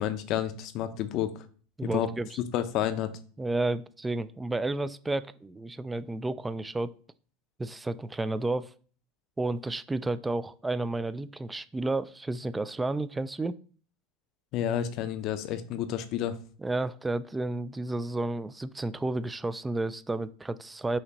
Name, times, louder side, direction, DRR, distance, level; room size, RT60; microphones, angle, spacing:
voice 1, 0.0-1.4 1.8-2.1 2.5-3.1 14.5-16.4, left 10 dB, 55° left, 11 dB, 0.6 m, -30 dB
voice 2, 1.8-2.4 3.4-6.9 7.6-8.7 9.4-13.6 16.6-21.0, right 2 dB, 15° right, 15 dB, 0.3 m, -31 dB
5.7 x 2.8 x 2.8 m, 0.43 s
hypercardioid pair, 90°, 0 cm